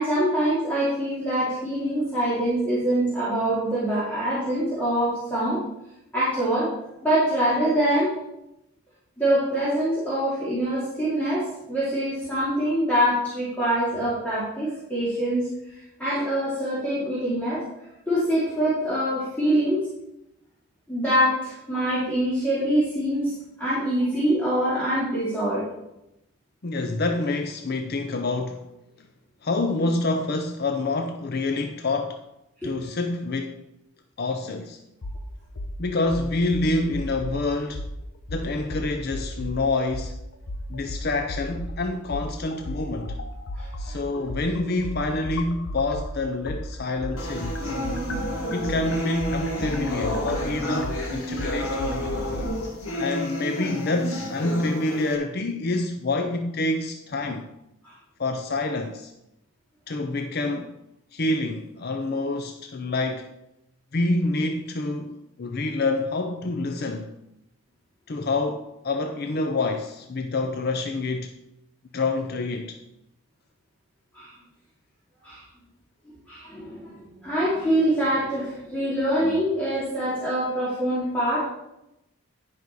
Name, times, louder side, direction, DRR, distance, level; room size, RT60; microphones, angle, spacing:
voice 1, 0.0-5.6 6.1-6.7 7.0-8.1 9.2-15.5 16.0-17.6 18.1-19.8 20.9-25.6 32.6-32.7 43.5-43.9 57.8-57.9 74.1-74.3 75.2-75.4 76.3-81.4, right 1 dB, 5° left, 2.6 m, -24 dB
voice 2, 26.6-28.7 29.4-32.2 32.6-33.6 34.2-34.8 35.8-37.9 38.3-40.2 40.7-43.2 43.8-47.6 48.5-51.8 53.0-57.5 58.2-59.1 59.9-60.7 61.1-63.3 63.9-67.1 68.1-71.3 71.9-72.8, left 2 dB, 45° left, 0.5 m, -27 dB
sound 1, 35.0-35.2 35.6-35.7 36.1-37.4 37.7-37.9 38.3-39.6 39.9-40.1 40.5-41.7 42.1-46.1 46.5-52.5, left 1 dB, 65° left, 0.9 m, -33 dB
sound 2, 47.2-55.2, equal, 80° left, 1.6 m, -30 dB
10.5 x 5.4 x 4.7 m
head